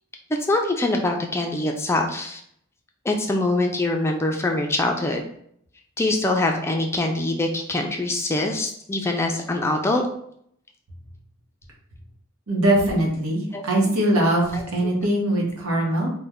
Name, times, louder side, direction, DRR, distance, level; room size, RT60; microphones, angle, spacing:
voice 1, 0.5-2.4 3.0-5.2 6.0-10.0 13.5-13.9 14.5-14.6, left 2 dB, 10° left, 2 dB, 0.3 m, -24 dB
voice 2, 12.5-16.1, right 1 dB, 85° right, -2 dB, 1.0 m, -21 dB
3.2 x 2.1 x 3.5 m, 0.67 s
head